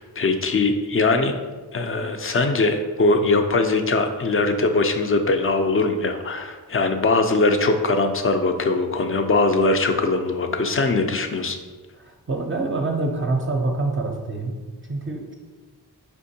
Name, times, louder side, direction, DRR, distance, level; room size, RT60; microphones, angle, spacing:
voice 1, 0.0-1.3 1.7-11.6, left 3 dB, 35° left, 6 dB, 0.5 m, -21 dB
voice 2, 11.9-15.3, right 2 dB, 30° right, 1 dB, 0.5 m, -26 dB
4.3 x 3.5 x 2.7 m, 1.3 s
cardioid pair, 50°, 38 cm